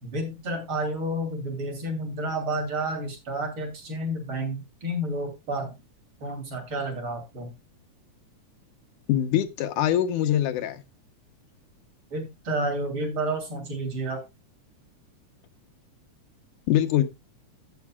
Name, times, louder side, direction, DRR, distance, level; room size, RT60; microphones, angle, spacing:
voice 1, 0.0-5.7 6.2-7.5 12.1-14.2, right 1 dB, 45° right, 3.8 m, -30 dB
voice 2, 9.1-10.8 16.7-17.1, left 11 dB, 85° left, 2.5 m, -23 dB
15.5 x 7.0 x 2.3 m
omnidirectional pair, 3.5 m